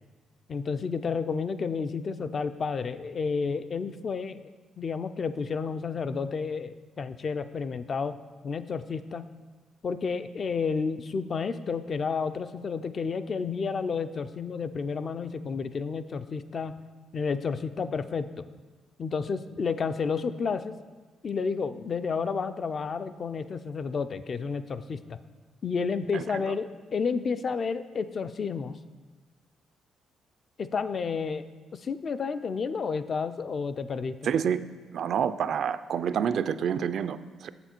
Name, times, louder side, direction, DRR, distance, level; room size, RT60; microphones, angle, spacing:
voice 1, 0.5-4.4 4.8-8.2 8.4-9.3 9.8-16.8 17.1-18.5 19.0-20.7 21.2-25.2 25.6-28.8 30.6-31.5 31.7-34.2, left 5 dB, 45° left, 12 dB, 0.4 m, -31 dB
voice 2, 34.2-34.6 34.9-37.5, right 8 dB, 65° right, 13 dB, 0.3 m, -28 dB
7.3 x 6.9 x 4.4 m, 1.4 s
cardioid pair, 90°, 0 cm